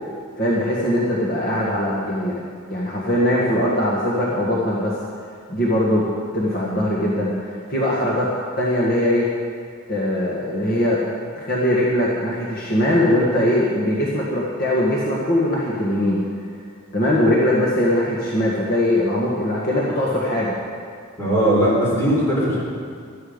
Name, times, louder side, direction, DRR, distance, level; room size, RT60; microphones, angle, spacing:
voice 1, 0.4-2.3 2.7-4.9 5.5-6.1 6.3-8.3 8.6-9.3 9.9-11.0 11.3-16.2 16.9-20.5, left 1 dB, 45° left, -5 dB, 1.6 m, -21 dB
voice 2, 21.2-22.6, right 1 dB, 10° left, -7 dB, 3.9 m, -19 dB
13.0 x 12.5 x 5.2 m, 2.1 s
head